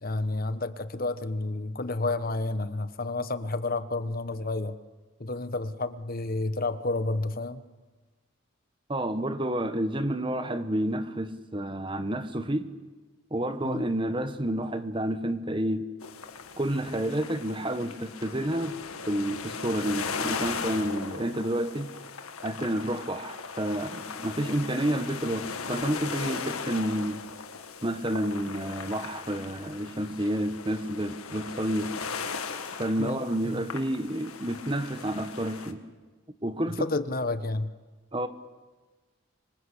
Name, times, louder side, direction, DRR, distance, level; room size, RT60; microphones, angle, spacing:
voice 1, 0.0-4.8 5.2-7.6 13.6-13.8 33.0-33.2 33.5-33.6 36.7-37.7, left 2 dB, 40° left, 1.1 m, -30 dB
voice 2, 8.9-12.7 13.3-15.9 16.6-18.8 19.1-21.9 22.4-27.3 27.8-31.9 32.8-35.8 36.4-36.9 38.1-38.3, right 1 dB, 25° right, 1.3 m, -30 dB
sound 1, 16.0-35.7, left 5 dB, 85° left, 1.8 m, -38 dB
26.5 x 25.0 x 8.3 m
head